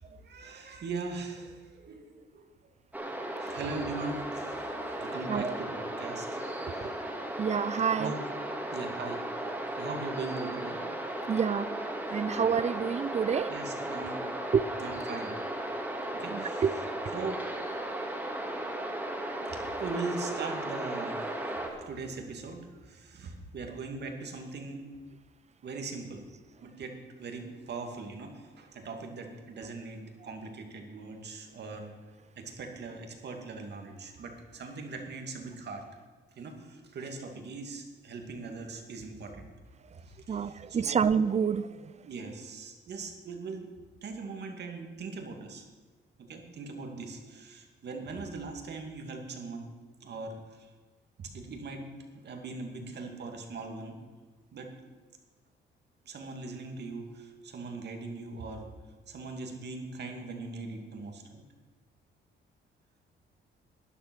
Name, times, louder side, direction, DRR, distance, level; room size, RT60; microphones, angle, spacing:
voice 1, 0.0-2.5 3.4-4.7 5.0-6.4 8.0-8.2 8.7-10.8 13.5-14.3 14.8-15.4 16.1-16.6 17.1-17.4 19.1-21.4 21.9-24.9 25.6-26.3 26.6-31.9 32.4-35.9 36.4-39.5 39.9-41.1 42.0-43.7 44.0-45.7 46.2-49.7 50.0-50.7 51.2-51.9 52.1-54.0 54.5-54.8 56.0-58.7 59.1-61.4, right 3 dB, 60° right, 2.3 m, -40 dB
sound 1, 2.9-21.7, right 1 dB, 10° right, 2.4 m, -36 dB
voice 2, 4.9-5.6 6.8-6.9 7.4-8.1 11.3-11.7 12.1-13.5 14.5-14.7 16.3-16.7 40.3-41.9, right 7 dB, 35° right, 0.6 m, -28 dB
12.0 x 10.5 x 6.2 m
cardioid pair, 90°, 20 cm